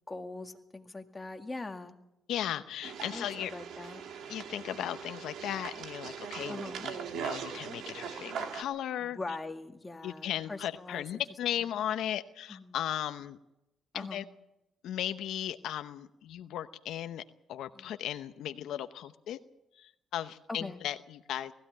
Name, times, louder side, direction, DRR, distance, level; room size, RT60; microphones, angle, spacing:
voice 1, 0.0-2.0 3.1-4.0 6.5-6.9 9.0-11.0 12.5-12.8 13.9-14.2 17.7-17.9 20.5-20.8, left 3 dB, 20° left, 5 dB, 2.0 m, -42 dB
voice 2, 2.3-3.5 4.3-9.2 10.0-13.4 13.9-14.2 14.8-17.2 17.5-19.4 19.8-21.5, left 11 dB, 80° left, 10 dB, 0.8 m, -36 dB
sound 1, 2.8-8.6, right 7 dB, 75° right, 2.1 m, -40 dB
19.5 x 15.0 x 8.7 m, 0.87 s
cardioid pair, 90°, 0 cm